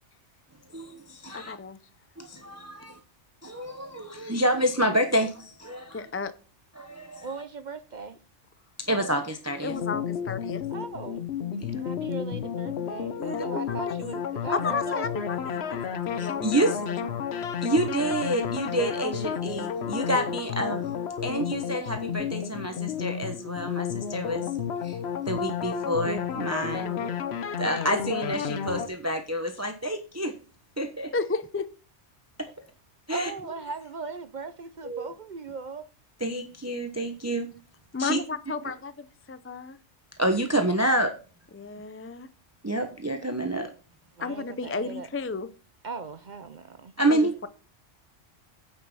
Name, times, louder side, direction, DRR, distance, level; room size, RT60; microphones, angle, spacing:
voice 1, 0.7-1.5 2.2-3.0 3.4-6.1 6.8-7.3 8.8-9.7 11.6-11.8 13.4-13.5 16.2-16.8 17.6-20.8 21.2-24.5 24.8-25.0 25.3-26.9 27.6-30.3 30.8-31.1 33.1-33.3 34.8-35.1 36.2-37.5 38.0-38.2 40.2-41.1 42.6-43.7 47.0-47.3, right 1 dB, 15° right, 0.9 m, -28 dB
voice 2, 1.3-1.8 5.9-6.3 9.6-10.6 13.2-14.0 14.5-15.8 16.1-16.8 26.6-27.1 31.1-31.7 37.9-39.8 41.5-42.3 44.2-45.5 47.1-47.5, left 4 dB, 20° left, 0.3 m, -33 dB
voice 3, 7.2-8.2 10.7-11.2 11.7-15.1 33.1-35.9 44.2-45.1 45.8-46.9, right 4 dB, 50° right, 0.6 m, -38 dB
sound 1, 9.7-28.9, left 8 dB, 60° left, 1.0 m, -31 dB
9.3 x 6.6 x 5.5 m
omnidirectional pair, 1.2 m